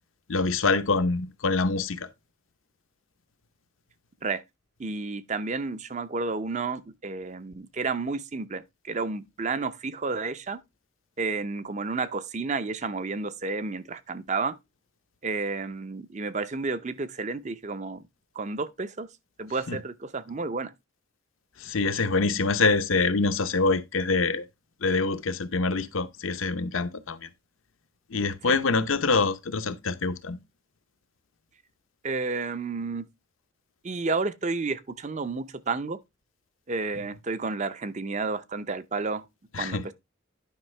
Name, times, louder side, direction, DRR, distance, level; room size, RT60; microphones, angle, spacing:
voice 1, 0.3-2.1 19.7-19.8 21.6-24.4 24.8-27.3 28.1-30.4 39.5-39.8, left 3 dB, 80° left, 0.8 m, -25 dB
voice 2, 4.8-10.6 11.2-14.5 15.2-18.0 18.4-19.1 19.4-20.7 28.5-28.6 32.0-33.1 33.8-36.0 36.7-39.2 39.6-39.9, right 4 dB, 35° right, 0.6 m, -31 dB
10.5 x 5.5 x 3.2 m
head